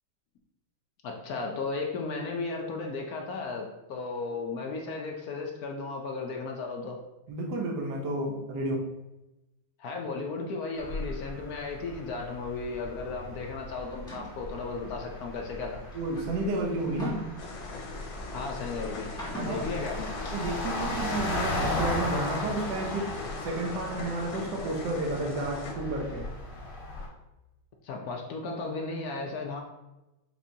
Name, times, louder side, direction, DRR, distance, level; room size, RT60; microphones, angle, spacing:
voice 1, 1.0-7.0 9.8-15.8 18.3-19.1 19.5-20.1 27.8-29.6, left 3 dB, 70° left, 1 dB, 0.9 m, -35 dB
voice 2, 7.3-8.8 15.9-17.2 19.3-19.8 20.3-23.1 23.4-26.3, right 2 dB, 65° right, 0 dB, 1.3 m, -31 dB
sound 1, 10.8-27.1, left 2 dB, 55° left, 1.5 m, -36 dB
sound 2, 13.9-14.4 15.5-17.9 19.0-19.7, equal, 5° left, 1.1 m, -40 dB
sound 3, 17.4-25.7, left 3 dB, 90° left, 1.6 m, -42 dB
6.0 x 3.2 x 2.7 m, 0.98 s
omnidirectional pair, 2.1 m